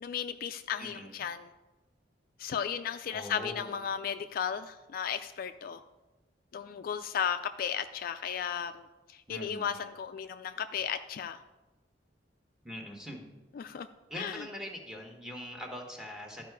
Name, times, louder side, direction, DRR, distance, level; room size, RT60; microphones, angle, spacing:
voice 1, 0.0-1.5 2.4-5.8 6.5-11.4 13.6-13.9 14.2-14.4, left 8 dB, 55° left, 9 dB, 0.3 m, -35 dB
voice 2, 0.8-1.2 3.1-3.7 9.3-9.7 12.6-13.2 14.1-16.5, equal, 5° right, 2 dB, 1.2 m, -42 dB
12.0 x 4.8 x 4.7 m, 1.1 s
head